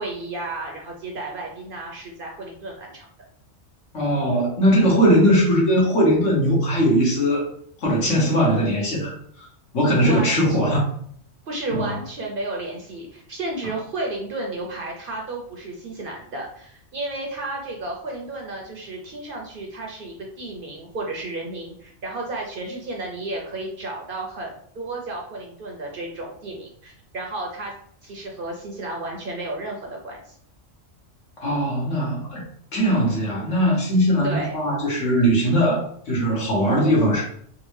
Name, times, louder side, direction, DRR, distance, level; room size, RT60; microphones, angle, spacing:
voice 1, 0.0-3.1 10.0-10.6 11.5-27.7 28.0-30.4 34.2-34.6, right 2 dB, 60° right, 0 dB, 0.7 m, -32 dB
voice 2, 3.9-7.5 7.8-9.5 9.7-10.9 11.7-11.9 31.4-32.4 32.7-37.2, equal, 75° left, -4 dB, 1.5 m, -20 dB
3.6 x 2.2 x 3.1 m, 0.63 s
omnidirectional pair, 1.3 m